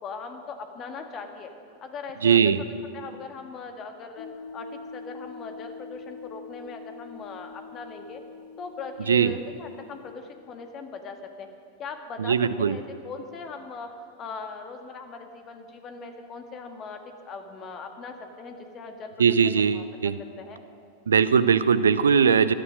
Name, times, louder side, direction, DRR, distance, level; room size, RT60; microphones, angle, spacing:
voice 1, 0.0-1.5 1.8-2.4 2.9-4.3 4.5-8.2 8.6-11.5 11.8-13.9 14.2-19.8 20.4-20.6, left 4 dB, 30° left, 5 dB, 1.7 m, -40 dB
voice 2, 2.2-2.6 9.1-9.3 12.2-12.8 19.2-20.1 21.1-22.5, right 6 dB, 70° right, 14 dB, 0.6 m, -20 dB
sound 1, 4.2-10.1, left 4 dB, 55° left, 1.5 m, -44 dB
17.5 x 12.5 x 6.4 m, 2.3 s
figure-of-eight pair, 90°, 0 cm